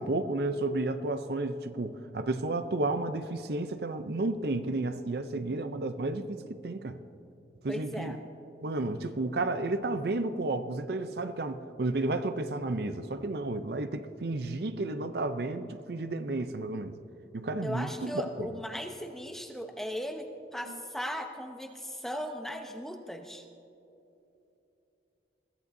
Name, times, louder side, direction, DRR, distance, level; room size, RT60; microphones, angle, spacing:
voice 1, 0.0-7.0 7.6-8.2 8.6-16.9 17.3-18.5 20.7-20.8, right 2 dB, 60° right, 10 dB, 0.5 m, -32 dB
voice 2, 7.7-8.2 17.6-20.3 20.5-23.4, equal, ahead, 4 dB, 0.8 m, -37 dB
21.5 x 15.0 x 2.7 m, 2.8 s
head